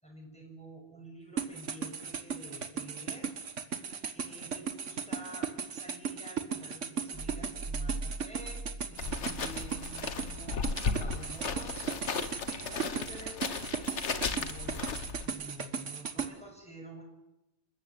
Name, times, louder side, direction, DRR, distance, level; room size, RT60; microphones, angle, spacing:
voice 1, 0.0-3.3 4.1-8.6 8.9-12.0 12.4-17.0, right 1 dB, 5° left, -1 dB, 7.0 m, -49 dB
sound 1, 1.4-16.3, right 6 dB, 80° right, 1.8 m, -36 dB
sound 2, 7.1-9.7 10.0-10.2, right 2 dB, 35° right, 1.4 m, -40 dB
sound 3, 9.0-15.3, left 5 dB, 70° left, 1.6 m, -35 dB
27.5 x 14.5 x 9.5 m, 0.93 s
omnidirectional pair, 1.2 m